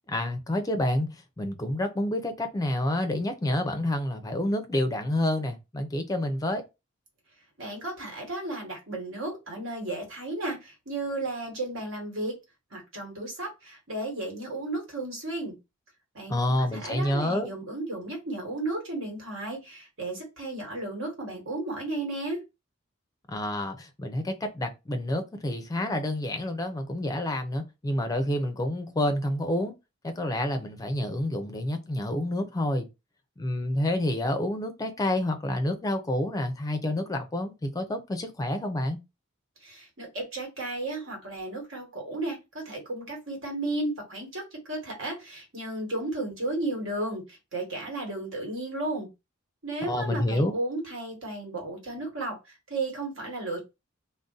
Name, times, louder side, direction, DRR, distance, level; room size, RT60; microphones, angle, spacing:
voice 1, 0.1-6.6 16.3-17.5 23.3-29.7 30.0-32.9 33.4-39.0 49.9-50.5, left 1 dB, 15° left, 0.4 m, -28 dB
voice 2, 7.6-12.4 12.7-15.6 16.1-22.4 39.6-49.1 49.6-53.6, right 2 dB, 70° right, 1.4 m, -34 dB
2.5 x 2.1 x 3.8 m
head